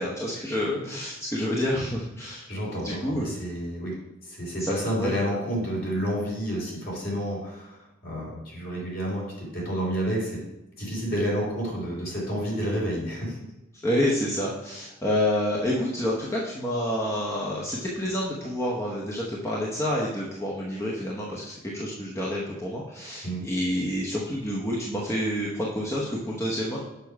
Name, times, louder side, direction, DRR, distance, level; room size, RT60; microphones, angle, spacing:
voice 1, 0.0-2.5 2.8-3.3 4.6-5.1 13.8-26.8, left 1 dB, 15° left, -4 dB, 0.8 m, -28 dB
voice 2, 2.5-3.9 4.2-10.4 10.8-13.4 23.2-23.4, equal, 50° left, -3 dB, 3.1 m, -30 dB
6.8 x 5.9 x 4.6 m, 0.98 s
head